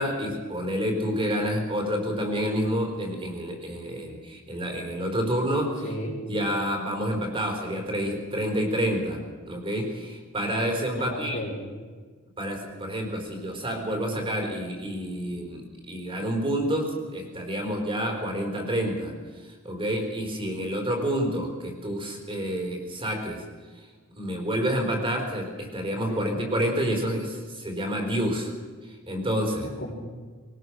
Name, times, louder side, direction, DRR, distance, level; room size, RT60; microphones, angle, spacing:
voice 1, 0.0-5.8 6.3-9.2 9.5-11.4 12.4-19.1 19.4-23.4 24.2-28.5 29.1-29.7, equal, 25° right, 2 dB, 4.4 m, -28 dB
voice 2, 5.8-6.2 11.0-11.5 26.1-26.4 29.6-29.9, equal, 55° left, -6 dB, 3.9 m, -34 dB
21.0 x 19.5 x 6.5 m, 1.5 s
head